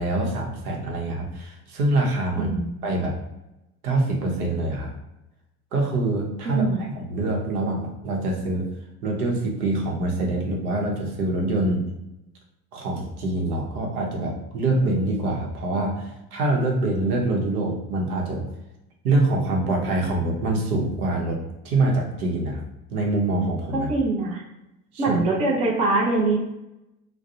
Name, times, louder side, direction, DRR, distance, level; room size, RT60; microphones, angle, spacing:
voice 1, 0.0-2.5 2.8-3.2 3.8-4.9 5.7-8.7 9.0-11.9 12.7-18.5 19.0-22.6 22.9-23.9 24.9-25.2, right 2 dB, 70° right, 0 dB, 0.8 m, -25 dB
voice 2, 2.4-2.8 6.4-6.8 23.9-24.4 25.0-26.4, right 3 dB, 15° right, -1 dB, 0.4 m, -23 dB
2.4 x 2.0 x 2.7 m, 0.91 s
figure-of-eight pair, 70°, 47 cm